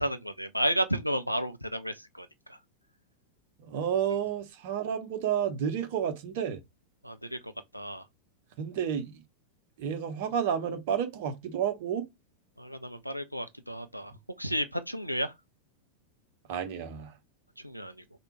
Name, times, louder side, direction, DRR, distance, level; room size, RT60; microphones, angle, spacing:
voice 1, 0.0-2.3 7.0-8.0 12.6-14.1 14.4-15.3 17.6-17.9, equal, 90° left, 0.4 m, -32 dB
voice 2, 3.6-6.6 8.6-9.2 9.8-12.1 16.5-17.1, right 8 dB, 50° right, 0.6 m, -31 dB
3.3 x 2.2 x 3.0 m
figure-of-eight pair, 90°, 0 cm